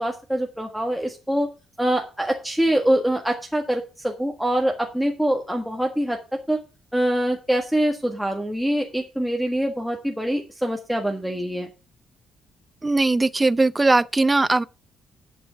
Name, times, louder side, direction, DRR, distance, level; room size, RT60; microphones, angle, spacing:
voice 1, 0.0-1.5 1.8-6.2 6.5-6.6 6.9-11.7, right 1 dB, ahead, 1.6 m, -24 dB
voice 2, 12.8-14.6, right 2 dB, 20° right, 0.5 m, -19 dB
11.0 x 6.2 x 5.8 m
cardioid pair, 90°, 0 cm